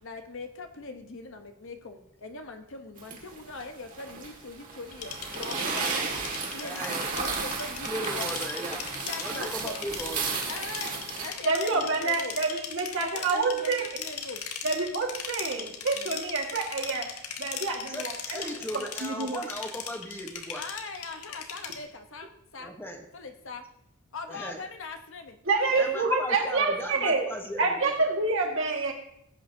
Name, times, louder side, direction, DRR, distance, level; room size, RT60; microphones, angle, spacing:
voice 1, 0.0-5.9 6.5-8.3 9.0-9.8 10.5-12.4 13.0-14.4 15.9-16.2 20.5-22.7 23.1-23.6 24.1-26.0, left 3 dB, 60° left, 5 dB, 1.0 m, -41 dB
sound 1, 3.0-11.3, right 4 dB, 35° right, 1.9 m, -34 dB
sound 2, 4.9-21.8, left 7 dB, 80° left, 1.3 m, -38 dB
voice 2, 6.6-7.1 7.9-8.9 9.2-10.4 11.8-12.0 17.9-20.6 22.6-23.1 24.3-24.6 25.7-28.1, equal, 10° left, 3 dB, 1.1 m, -37 dB
voice 3, 11.4-13.8 14.6-17.1 17.4-18.5 18.7-19.4 25.5-27.2 27.6-28.9, right 3 dB, 60° right, 1 dB, 1.8 m, -27 dB
16.0 x 8.6 x 2.7 m, 0.75 s
head